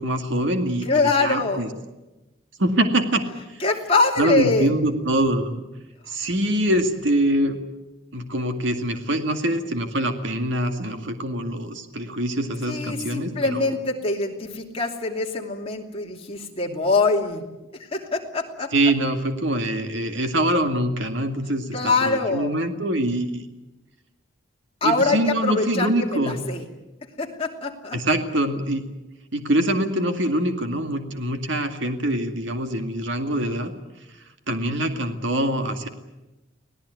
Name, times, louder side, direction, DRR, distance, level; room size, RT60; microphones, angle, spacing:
voice 1, 0.0-1.7 2.6-3.6 4.2-5.6 6.1-7.6 8.1-13.7 18.7-23.4 24.8-26.4 27.9-28.8 29.3-33.7 34.5-35.9, right 1 dB, 65° right, 6 dB, 2.2 m, -24 dB
voice 2, 0.8-1.7 3.6-4.7 12.7-17.4 17.9-18.7 21.7-22.5 24.8-26.6 27.2-28.0, left 3 dB, 30° left, 1 dB, 2.9 m, -24 dB
25.5 x 17.5 x 9.4 m, 1.0 s
head